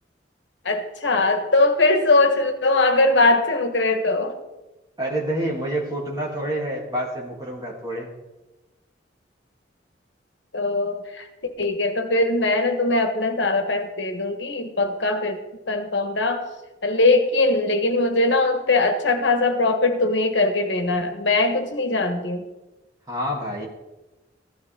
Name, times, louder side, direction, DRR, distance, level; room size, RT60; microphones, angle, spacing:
voice 1, 0.7-4.4 10.5-11.3 11.6-16.5 16.8-22.4, left 2 dB, 85° left, 6 dB, 1.6 m, -21 dB
voice 2, 5.0-8.1 23.1-23.7, right 1 dB, 20° right, -2 dB, 3.2 m, -27 dB
15.0 x 14.0 x 3.9 m, 1.0 s
head